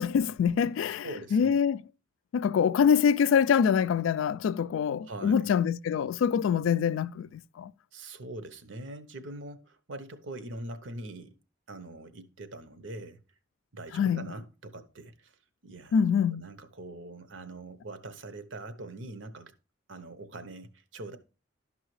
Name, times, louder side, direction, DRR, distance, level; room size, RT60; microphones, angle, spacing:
voice 1, 0.0-1.8 2.3-7.7 13.9-14.2 15.9-16.4, left 7 dB, 85° left, 0.3 m, -25 dB
voice 2, 0.9-1.6 5.0-5.5 7.9-11.3 11.7-13.2 13.7-15.3 15.6-19.5 19.9-21.2, right 2 dB, 75° right, 0.8 m, -43 dB
12.0 x 5.5 x 3.1 m
head